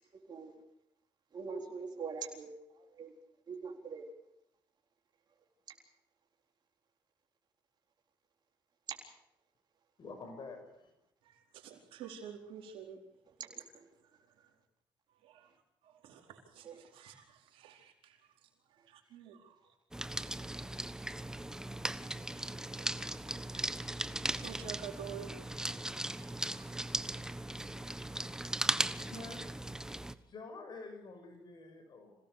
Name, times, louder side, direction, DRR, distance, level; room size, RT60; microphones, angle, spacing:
voice 1, 1.3-2.6 3.0-3.1 3.5-4.1 13.4-13.6 16.6-16.8, right 5 dB, 55° right, 1 dB, 4.1 m, -42 dB
voice 2, 10.0-10.9 28.6-29.5 30.2-32.1, left 3 dB, 55° left, 5 dB, 6.4 m, -48 dB
voice 3, 11.2-13.0 15.2-15.5 15.8-18.2 18.9-19.6 22.3-23.8 24.4-25.4 25.7-26.7, right 8 dB, 85° right, 2 dB, 4.6 m, -50 dB
sound 1, 19.9-30.1, right 1 dB, 5° right, 1.3 m, -38 dB
27.0 x 17.5 x 6.8 m, 0.83 s
supercardioid pair, 70°, 9 cm